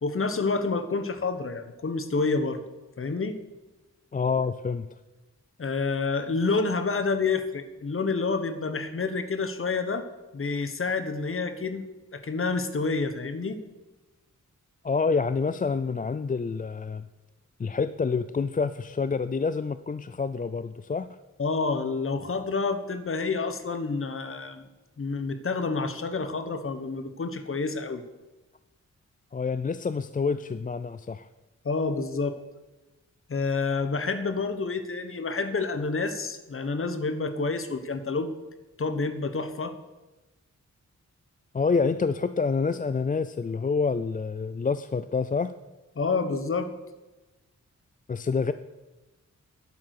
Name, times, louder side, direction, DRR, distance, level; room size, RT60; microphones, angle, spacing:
voice 1, 0.0-2.6 3.0-3.4 5.6-10.1 10.3-11.9 12.1-13.6 21.4-24.7 25.0-28.0 31.6-32.4 33.3-38.4 38.8-39.8 46.0-46.7, left 4 dB, 45° left, 10 dB, 1.2 m, -28 dB
voice 2, 4.1-4.9 14.8-17.0 17.6-21.1 29.3-31.3 41.5-45.5 48.1-48.5, left 5 dB, 30° left, 12 dB, 0.4 m, -27 dB
12.5 x 10.5 x 6.7 m, 1.1 s
wide cardioid pair, 150°, 30 cm